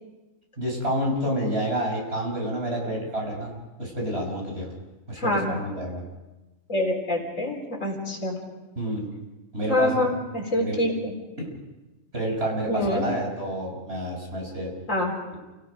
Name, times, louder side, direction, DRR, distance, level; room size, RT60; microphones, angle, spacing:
voice 1, 0.6-3.5 3.8-4.7 5.1-6.0 8.8-9.1 9.5-10.1 10.6-10.8 11.4-11.5 12.1-14.7, right 1 dB, 50° right, -1 dB, 6.1 m, -29 dB
voice 2, 5.2-5.6 6.7-8.4 9.7-11.1 12.7-13.0 14.9-15.1, left 1 dB, 70° left, 0 dB, 4.5 m, -26 dB
29.0 x 18.5 x 5.2 m, 1.1 s
omnidirectional pair, 1.4 m